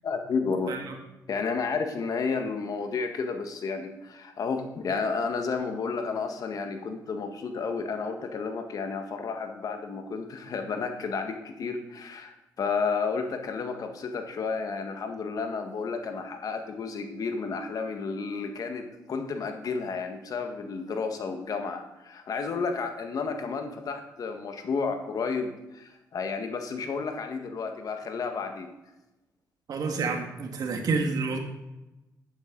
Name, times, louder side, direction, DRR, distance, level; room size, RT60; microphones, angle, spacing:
voice 1, 0.0-0.7 1.3-28.7, left 5 dB, 60° left, 5 dB, 1.7 m, -32 dB
voice 2, 29.7-31.4, right 4 dB, 65° right, 4 dB, 2.0 m, -28 dB
11.0 x 9.3 x 4.0 m, 1.0 s
supercardioid pair, 70°, 7 cm